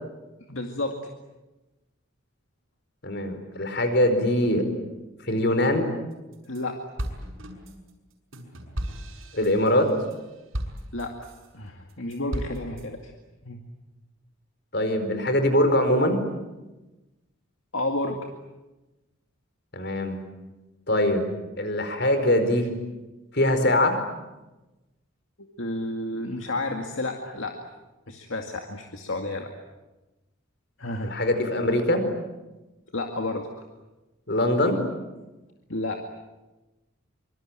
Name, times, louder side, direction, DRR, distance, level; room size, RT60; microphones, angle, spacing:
voice 1, 0.5-1.0 6.5-6.8 10.9-11.3 11.5-13.1 13.4-13.6 17.7-18.3 25.6-27.6 28.1-29.5 30.8-31.2 32.9-33.5 35.7-36.0, left 2 dB, 70° left, 3 dB, 2.2 m, -31 dB
voice 2, 3.0-4.6 5.3-5.9 9.3-9.9 14.7-16.2 19.7-20.2 20.9-21.3 21.6-22.7 23.3-24.0 31.0-32.0 34.3-34.8, left 1 dB, 55° left, 8 dB, 4.8 m, -22 dB
sound 1, 6.1-6.6 7.0-11.5 11.9-12.9, equal, 80° right, 6.3 m, -35 dB
25.5 x 25.0 x 9.0 m, 1.1 s
head